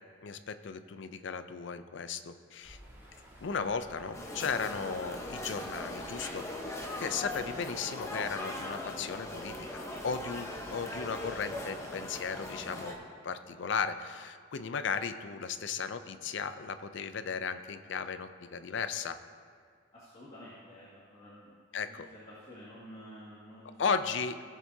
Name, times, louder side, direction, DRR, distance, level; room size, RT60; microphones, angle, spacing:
voice 1, 0.2-2.8 3.4-6.5 7.0-12.9 13.2-19.2 21.7-22.1 23.8-24.4, left 5 dB, 65° left, 11 dB, 0.5 m, -36 dB
sound 1, 2.6-12.9, equal, 15° right, 2.2 m, -55 dB
sound 2, 4.1-13.0, left 1 dB, 15° left, 1.0 m, -40 dB
voice 2, 19.9-21.6 21.9-23.8 24.1-24.2, equal, 35° left, -9 dB, 1.9 m, -51 dB
17.0 x 7.4 x 2.8 m, 2.4 s
head